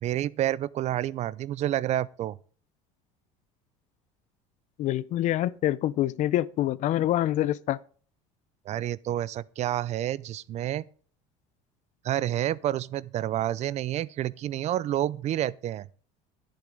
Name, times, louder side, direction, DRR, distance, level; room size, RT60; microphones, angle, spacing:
voice 1, 0.0-2.4 8.7-10.8 12.0-15.9, right 12 dB, 45° right, 0.5 m, -29 dB
voice 2, 4.8-7.8, left 13 dB, 50° left, 0.5 m, -26 dB
11.0 x 10.5 x 3.9 m
supercardioid pair, 105°, 16 cm